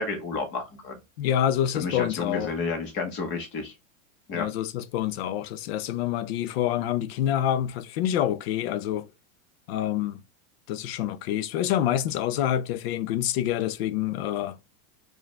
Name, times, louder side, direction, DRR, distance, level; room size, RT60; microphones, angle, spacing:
voice 1, 0.0-1.0 1.7-3.7 4.3-4.5, left 4 dB, 30° left, 1.0 m, -31 dB
voice 2, 1.2-2.5 4.3-9.1 9.7-10.2 10.7-14.6, left 11 dB, 50° left, 0.4 m, -27 dB
4.6 x 2.4 x 3.2 m
supercardioid pair, 170°, 40 cm